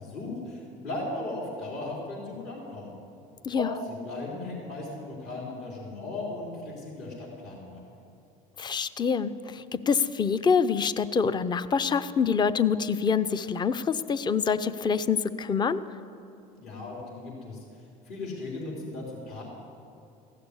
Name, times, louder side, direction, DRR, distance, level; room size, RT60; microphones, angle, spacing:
voice 1, 0.0-3.0 3.6-7.8 16.6-17.6 18.1-19.4, left 2 dB, 65° left, -3 dB, 3.9 m, -37 dB
voice 2, 8.6-15.8, left 6 dB, 25° left, 14 dB, 0.5 m, -26 dB
15.5 x 6.8 x 9.8 m, 2.6 s
supercardioid pair, 90°, 18 cm